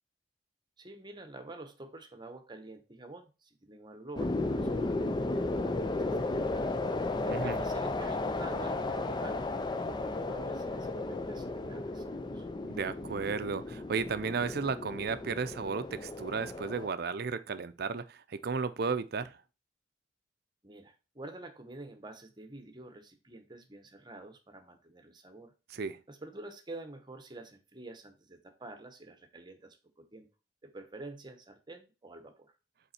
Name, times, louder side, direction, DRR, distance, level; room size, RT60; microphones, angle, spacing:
voice 1, 0.8-6.7 7.3-9.4 9.8-12.5 20.6-25.5 26.1-30.3 30.6-32.5, right 2 dB, 25° right, 1.0 m, -48 dB
sound 1, 4.2-16.9, left 2 dB, 25° left, 0.5 m, -34 dB
voice 2, 7.3-7.6 12.6-19.4 25.7-26.0, right 5 dB, 60° right, 0.5 m, -34 dB
5.5 x 4.2 x 4.2 m
head